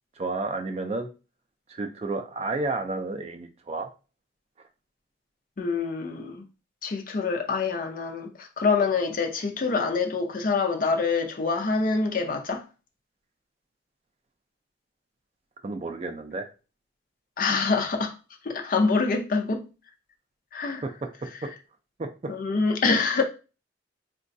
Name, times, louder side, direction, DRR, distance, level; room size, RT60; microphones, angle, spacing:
voice 1, 0.2-1.1 1.7-3.9 15.6-16.5 20.8-21.1 21.4-21.5 22.0-22.1, right 3 dB, 35° right, 0.4 m, -31 dB
voice 2, 5.6-6.4 6.8-12.6 17.4-18.1 18.4-19.7 20.5-20.8 22.3-23.2, left 4 dB, 50° left, 0.5 m, -25 dB
3.8 x 2.2 x 2.6 m
head